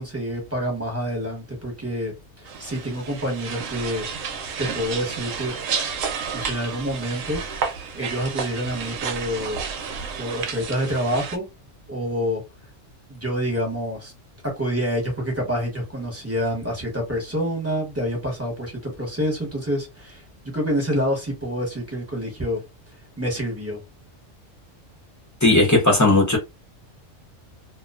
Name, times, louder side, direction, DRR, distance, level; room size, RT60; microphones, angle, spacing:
voice 1, 0.0-4.1 4.6-5.5 6.3-7.6 7.9-9.6 10.2-11.4 11.9-12.4 13.1-14.1 14.4-22.6 23.2-23.8, equal, 15° right, 0.9 m, -27 dB
sound 1, 2.5-11.4, right 6 dB, 90° right, 1.0 m, -31 dB
voice 2, 25.4-26.4, left 2 dB, 20° left, 0.5 m, -16 dB
2.4 x 2.2 x 2.3 m
omnidirectional pair, 1.3 m